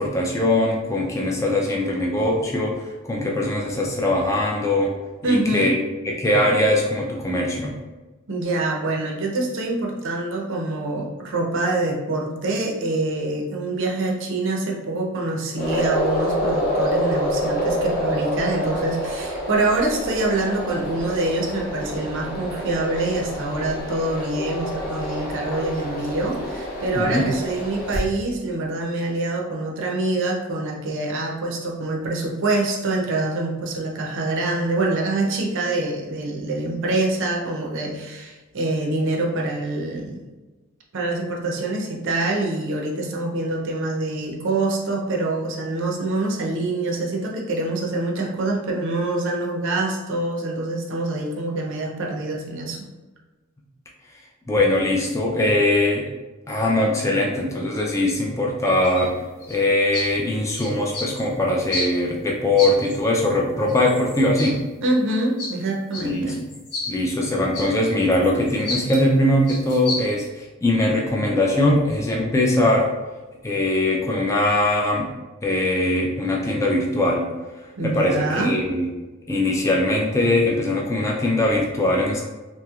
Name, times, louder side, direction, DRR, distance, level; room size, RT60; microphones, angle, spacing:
voice 1, 0.0-4.9 5.2-5.8 6.0-7.7 26.9-27.3 54.5-56.1 56.5-59.1 59.5-64.6 66.0-66.4 66.9-72.9 73.4-75.1 75.4-77.3 77.8-78.9 79.3-82.2, left 1 dB, 15° left, -1 dB, 0.3 m, -21 dB
voice 2, 5.2-5.8 8.3-40.2 40.9-52.9 64.8-66.4 77.8-78.6, right 2 dB, 60° right, 0 dB, 0.6 m, -25 dB
sound 1, 15.5-28.0, equal, 40° left, 0.7 m, -27 dB
sound 2, 58.8-59.1 59.4-59.6 59.9-60.1 60.6-61.2 61.7-61.9 62.6-63.0 63.7-64.5 65.4-65.5 65.9-66.0 66.5-66.9 67.5-69.0 69.5-70.0, left 2 dB, 85° left, 1.0 m, -30 dB
2.9 x 2.8 x 2.3 m, 1.2 s
head